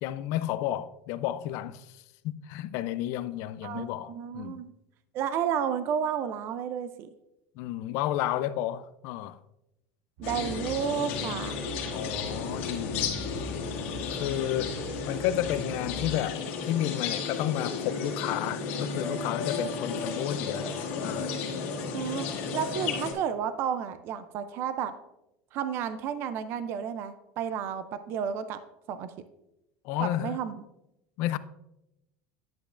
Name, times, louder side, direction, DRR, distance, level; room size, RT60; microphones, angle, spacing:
voice 1, 0.0-1.9 2.2-4.6 7.6-9.4 11.9-13.6 14.1-14.8 15.0-20.7 21.0-21.3 29.8-30.4 31.2-31.4, left 13 dB, 50° left, 0.4 m, -32 dB
voice 2, 3.6-4.7 5.1-7.1 10.2-11.6 21.9-24.9 25.5-28.6 28.9-29.1 30.0-30.5, right 8 dB, 35° right, 0.4 m, -32 dB
sound 1, 10.2-23.1, left 5 dB, 75° left, 1.6 m, -33 dB
sound 2, 10.2-16.1, right 1 dB, 70° right, 1.5 m, -41 dB
10.5 x 8.1 x 2.4 m
cardioid pair, 170°, 7 cm